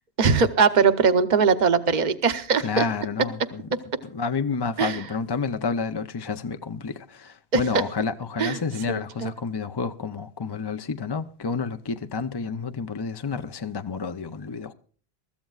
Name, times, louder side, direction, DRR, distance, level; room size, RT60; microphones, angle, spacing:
voice 1, 0.2-2.9 4.8-5.0 7.5-7.6 8.4-8.6 8.9-9.3, right 5 dB, 45° right, 0.9 m, -21 dB
voice 2, 2.6-3.7 4.1-14.7, left 5 dB, 35° left, 0.4 m, -30 dB
22.5 x 14.0 x 2.4 m
omnidirectional pair, 1.1 m